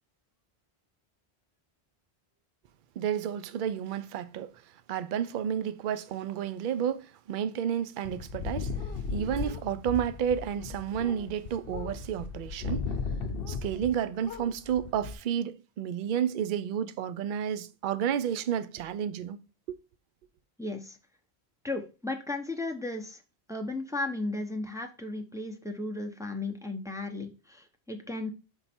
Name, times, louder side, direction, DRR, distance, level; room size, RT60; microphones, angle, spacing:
voice 1, 3.0-4.5 4.9-8.7 9.1-12.9 13.5-19.4 19.7-19.8, right 9 dB, 60° right, 0.6 m, -31 dB
sound 1, 8.0-14.0 14.2-15.1, left 5 dB, 60° left, 0.8 m, -36 dB
voice 2, 20.6-21.0 21.6-23.2 23.5-28.3, left 2 dB, 5° right, 0.5 m, -35 dB
5.3 x 4.4 x 4.2 m
omnidirectional pair, 1.1 m